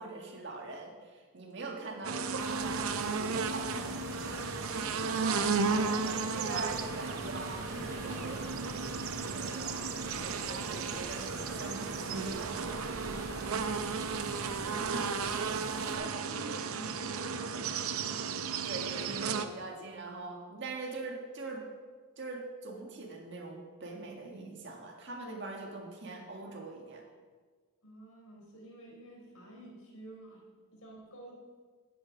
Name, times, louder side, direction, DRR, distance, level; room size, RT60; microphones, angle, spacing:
voice 1, 0.0-13.5 14.9-15.0 15.8-16.3 18.6-21.7 22.2-27.0, right 3 dB, 50° right, 1 dB, 1.8 m, -43 dB
sound 1, 2.0-19.5, right 5 dB, 75° right, 0.7 m, -34 dB
sound 2, 2.4-16.0, right 1 dB, 15° right, 2.4 m, -46 dB
voice 2, 14.3-15.5 16.3-18.2 27.8-30.4 30.7-31.3, right 1 dB, 75° left, -2 dB, 4.0 m, -50 dB
11.0 x 9.5 x 5.1 m, 1.5 s
head